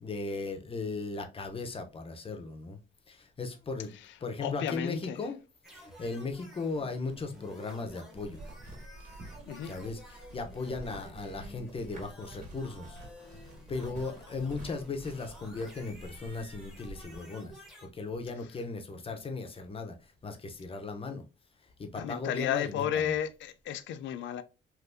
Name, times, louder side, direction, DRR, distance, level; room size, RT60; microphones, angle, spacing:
voice 1, 0.0-2.8 3.1-5.4 5.7-8.4 9.6-13.0 13.7-20.0 20.2-21.2 21.8-23.1, left 3 dB, 30° left, 0.7 m, -37 dB
voice 2, 4.4-5.2 9.5-9.7 22.0-24.4, left 9 dB, 70° left, 0.4 m, -33 dB
sound 1, 5.6-17.9, equal, ahead, 1.0 m, -52 dB
sound 2, 8.2-17.2, right 1 dB, 35° right, 1.9 m, -49 dB
3.4 x 2.6 x 2.6 m
cardioid pair, 90°, 20 cm